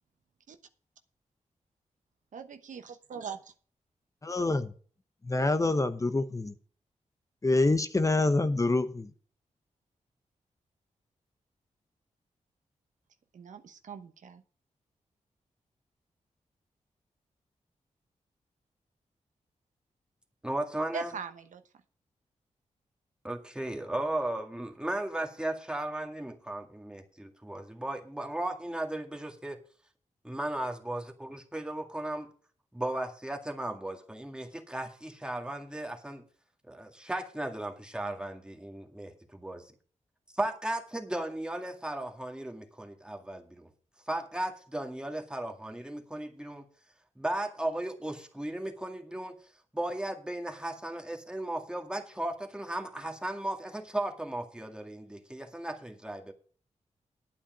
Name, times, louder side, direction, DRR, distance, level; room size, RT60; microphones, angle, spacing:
voice 1, 2.3-3.5 13.3-14.4 20.9-21.6, right 5 dB, 80° right, 1.0 m, -41 dB
voice 2, 4.2-4.7 5.2-6.5 7.4-9.1, left 2 dB, 25° left, 0.9 m, -26 dB
voice 3, 20.4-21.1 23.2-29.6 30.2-32.3 32.7-36.2 36.7-39.7 40.4-43.7 44.1-46.6 47.2-49.4 49.7-56.3, right 1 dB, 5° right, 2.0 m, -36 dB
10.0 x 8.7 x 5.0 m
cardioid pair, 70°, 13 cm